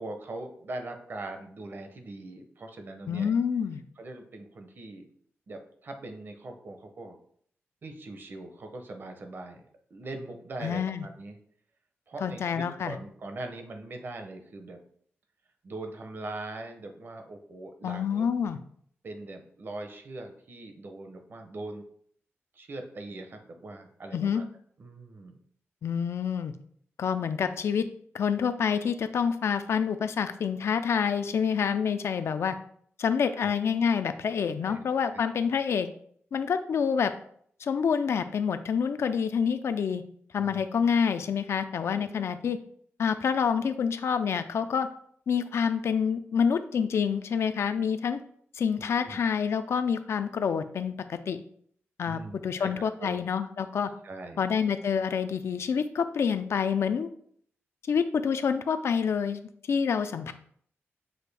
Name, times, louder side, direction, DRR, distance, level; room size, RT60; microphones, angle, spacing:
voice 1, 0.0-3.3 4.0-5.1 5.5-7.2 7.8-9.6 9.9-11.4 12.1-14.8 15.6-18.3 19.0-21.8 22.5-24.4 24.8-25.3 33.3-33.5 34.6-34.8 35.1-35.2 40.4-40.6 41.9-42.1 48.9-49.2 52.1-52.7 53.0-53.2 54.0-54.5, right 2 dB, 50° right, 5 dB, 0.6 m, -41 dB
voice 2, 3.1-3.8 10.6-11.1 12.2-13.0 17.8-18.6 24.1-24.4 25.8-26.5 27.0-27.9 28.1-32.6 33.0-35.9 36.3-37.1 37.6-40.0 40.3-42.6 43.0-44.9 45.3-48.2 48.5-51.4 52.0-53.9 54.4-57.1 57.9-60.3, left 6 dB, 65° left, 10 dB, 0.3 m, -27 dB
6.3 x 2.5 x 3.3 m, 0.62 s
wide cardioid pair, 150°, 5 cm